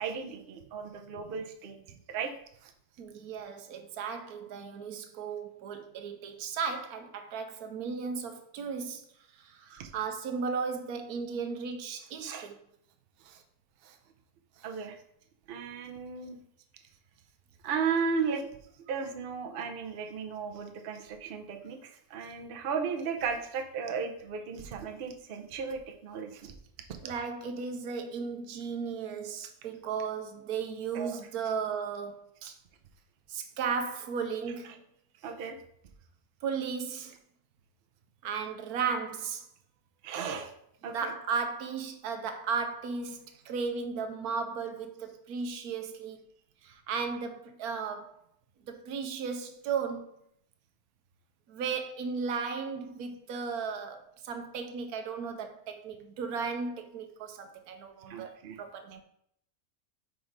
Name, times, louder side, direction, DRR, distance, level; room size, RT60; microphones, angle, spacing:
voice 1, 0.0-1.8 2.1-2.3 2.6-2.7 9.7-9.9 12.2-12.5 13.2-13.4 13.8-14.0 14.6-15.0 15.5-16.4 17.6-18.5 18.9-26.5 30.9-31.2 35.2-35.6 40.0-40.5 40.8-41.1 58.1-58.6, right 6 dB, 50° right, 0.7 m, -35 dB
voice 2, 3.0-9.0 9.3-12.6 27.0-32.5 33.3-34.7 36.4-37.1 38.2-39.4 40.9-46.2 46.6-48.2 48.7-50.1 51.5-59.0, right 5 dB, 80° right, 1.2 m, -35 dB
5.2 x 4.6 x 3.9 m
omnidirectional pair, 1.6 m